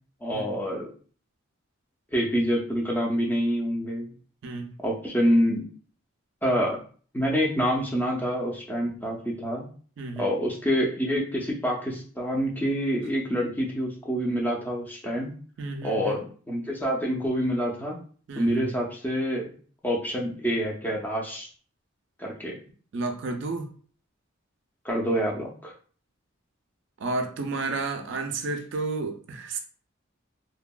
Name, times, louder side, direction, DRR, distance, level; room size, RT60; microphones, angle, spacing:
voice 1, 0.2-0.9 2.1-4.1 4.8-5.6 6.4-6.8 7.1-9.6 10.2-15.3 15.8-18.0 18.4-19.5 19.8-21.5 22.2-22.5 24.8-25.7, equal, 10° left, -2 dB, 0.4 m, -27 dB
voice 2, 4.4-4.7 10.0-10.3 15.6-16.2 18.3-18.7 22.9-23.7 27.0-29.6, right 3 dB, 55° right, 5 dB, 0.3 m, -31 dB
2.7 x 2.3 x 2.2 m, 0.43 s
head